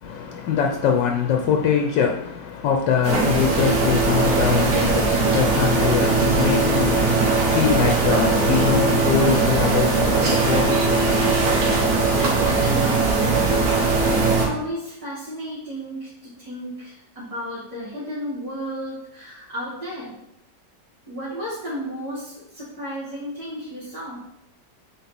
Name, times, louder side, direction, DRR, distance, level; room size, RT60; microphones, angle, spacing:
voice 1, 0.0-12.3, left 7 dB, 85° left, 1.4 m, -23 dB
sound 1, 3.0-14.5, right 3 dB, 60° right, 1.9 m, -20 dB
voice 2, 12.2-13.4 14.0-20.1 21.1-24.2, equal, 20° right, 2.2 m, -33 dB
8.2 x 4.0 x 4.2 m
omnidirectional pair, 1.9 m